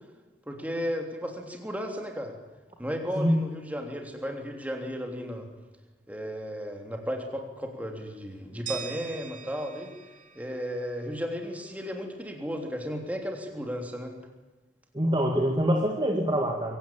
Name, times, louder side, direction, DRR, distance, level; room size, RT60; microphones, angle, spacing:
voice 1, 0.5-2.3 2.8-5.5 6.1-9.9 10.4-14.1, equal, 10° right, 3 dB, 3.4 m, -34 dB
sound 1, 8.7-11.6, right 8 dB, 45° right, 2.7 m, -43 dB
voice 2, 14.9-16.8, equal, 25° right, 1 dB, 2.1 m, -25 dB
23.5 x 17.5 x 8.9 m, 1.2 s
head